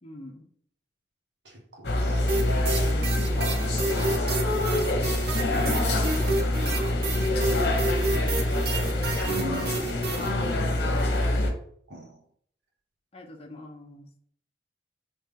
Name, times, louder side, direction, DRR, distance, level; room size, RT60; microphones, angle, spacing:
voice 1, 0.0-0.5 5.8-7.9 13.1-14.1, left 1 dB, 35° left, 0.7 m, -46 dB
voice 2, 1.4-2.3 3.2-5.1 5.7-5.9 9.3-9.8 11.9-12.2, right 1 dB, 75° right, 1.1 m, -40 dB
sound 1, 1.8-11.5, left 1 dB, 65° left, 0.9 m, -25 dB
sound 2, 2.3-10.3, right 3 dB, 60° right, 0.7 m, -31 dB
3.4 x 3.2 x 3.4 m
head